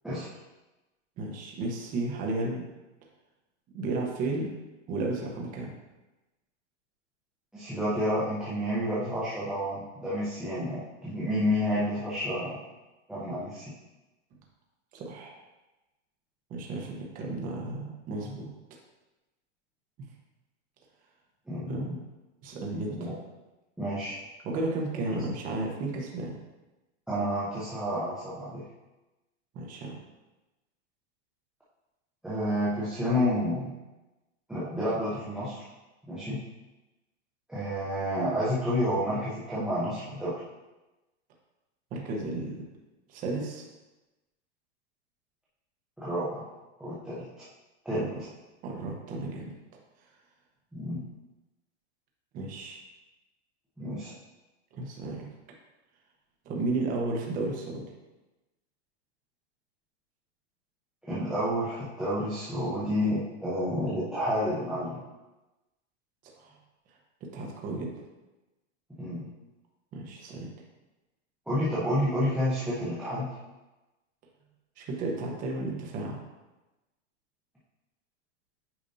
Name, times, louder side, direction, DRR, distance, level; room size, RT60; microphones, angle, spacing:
voice 1, 1.2-2.6 3.7-4.5 4.9-5.7 14.9-15.4 16.5-18.5 21.7-21.9 22.4-23.1 24.4-26.4 29.5-30.0 41.9-42.6 43.1-43.6 47.9-48.2 48.6-49.5 52.3-52.8 54.7-55.3 56.4-57.9 66.4-66.5 67.3-67.9 69.9-70.5 74.8-76.2, right 2 dB, 25° right, -1 dB, 0.9 m, -33 dB
voice 2, 7.5-12.6 13.1-13.7 21.5-22.0 23.0-23.1 23.8-24.1 27.1-28.6 32.2-33.7 34.5-35.6 36.1-36.4 37.5-40.4 46.0-46.5 46.8-47.2 47.8-48.1 50.7-51.0 53.8-54.1 61.0-65.0 69.0-69.3 71.5-73.4, equal, ahead, -11 dB, 0.7 m, -30 dB
8.7 x 5.0 x 2.7 m, 1.1 s
supercardioid pair, 170°, 36 cm